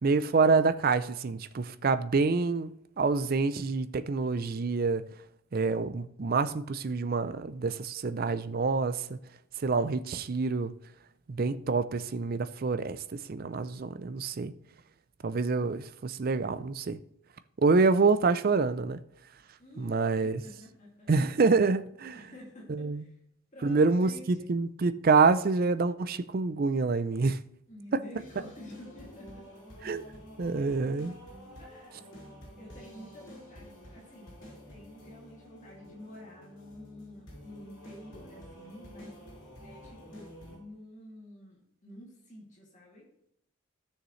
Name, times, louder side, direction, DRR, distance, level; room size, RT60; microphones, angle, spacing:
voice 1, 0.0-5.0 5.5-9.2 9.6-10.7 11.3-13.0 13.3-14.5 15.2-17.0 17.6-19.0 19.8-20.4 21.1-22.1 22.7-23.0 23.6-27.4 29.8-30.0 30.4-31.1, right 4 dB, 40° right, 0.4 m, -27 dB
voice 2, 19.6-21.3 22.1-23.2 23.5-24.5 27.7-29.6 31.6-32.0 32.6-39.2 39.6-43.1, left 1 dB, 35° left, 2.4 m, -50 dB
sound 1, 28.2-40.6, equal, 55° left, 4.2 m, -49 dB
14.0 x 6.5 x 3.2 m
head